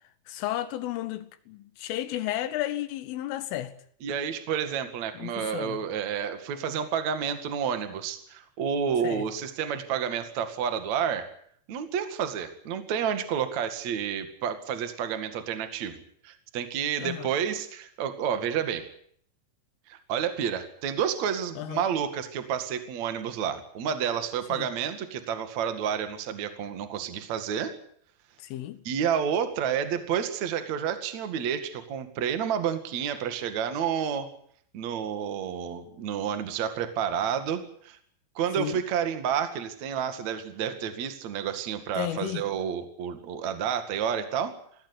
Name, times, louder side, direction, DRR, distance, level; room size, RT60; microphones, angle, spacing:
voice 1, 0.3-3.7 5.2-5.8 9.0-9.3 17.0-17.3 21.6-21.9 24.5-24.7 28.4-28.8 38.6-38.8 42.0-42.5, left 14 dB, 80° left, 3.9 m, -33 dB
voice 2, 4.0-11.3 11.7-18.9 19.9-27.7 28.8-34.3 34.7-38.0 38.4-44.6, right 8 dB, 45° right, 2.6 m, -30 dB
20.5 x 17.0 x 10.0 m
omnidirectional pair, 5.7 m